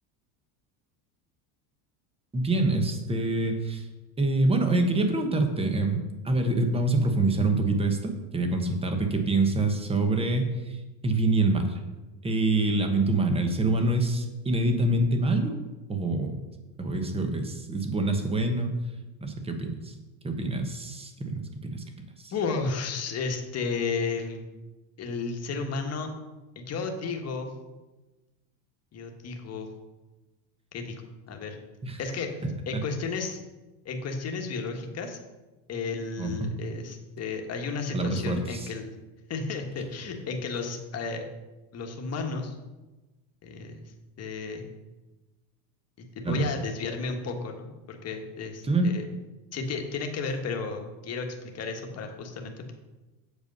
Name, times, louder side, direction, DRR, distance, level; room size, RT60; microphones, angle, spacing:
voice 1, 2.3-3.9 4.2-10.8 11.0-11.8 12.2-15.6 15.9-16.3 16.8-18.8 19.2-19.9 20.2-21.8 22.2-22.3 31.8-32.0 32.7-32.8 36.2-36.5 37.9-38.7 46.2-46.4 48.6-48.9, right 2 dB, 10° right, 6 dB, 1.0 m, -26 dB
voice 2, 22.3-24.4 25.0-26.1 26.5-27.5 28.9-29.7 30.7-31.0 31.3-31.6 32.0-32.3 32.7-33.4 33.8-35.2 35.7-38.9 39.3-41.2 41.7-42.6 43.4-44.6 46.0-49.1 49.5-52.7, left 4 dB, 30° left, 3 dB, 1.4 m, -33 dB
8.2 x 7.0 x 5.3 m, 1.1 s
supercardioid pair, 140°, 49 cm